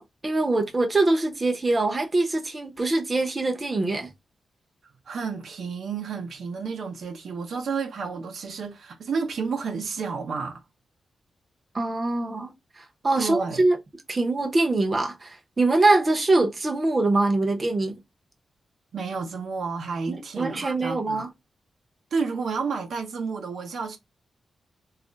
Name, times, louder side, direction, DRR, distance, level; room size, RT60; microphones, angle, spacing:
voice 1, 0.0-4.1 11.7-13.8 14.1-18.0 20.1-21.3, right 2 dB, 30° right, 0.6 m, -23 dB
voice 2, 5.1-10.6 13.2-13.6 18.9-21.2 22.1-24.0, right 5 dB, 80° right, 0.6 m, -31 dB
2.4 x 2.0 x 3.8 m
wide cardioid pair, 110°, 0 cm